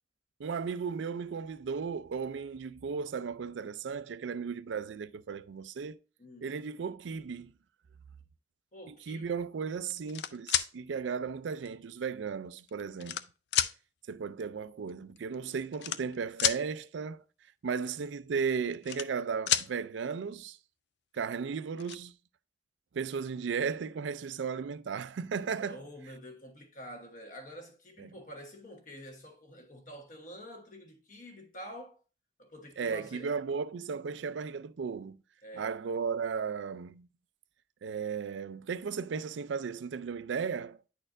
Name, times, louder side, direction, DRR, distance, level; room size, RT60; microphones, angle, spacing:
voice 1, 0.4-6.0 6.4-7.5 8.9-13.2 14.1-17.2 17.6-20.6 21.1-22.1 22.9-25.8 28.0-28.1 32.8-35.2 35.5-37.1 37.8-40.8, right 6 dB, 90° right, 0.4 m, -35 dB
voice 2, 6.2-6.5 8.7-9.4 25.6-32.0 32.4-33.4 35.4-35.8, equal, 45° left, 1.2 m, -47 dB
sound 1, 9.9-10.7 11.7-11.8 12.6-13.2 13.5-13.7 14.9-15.0 15.2-15.3 15.7-16.6 18.5-19.2 19.5-19.7 21.1-21.2 21.5-22.0, left 11 dB, 70° left, 0.4 m, -30 dB
9.9 x 4.3 x 2.5 m
head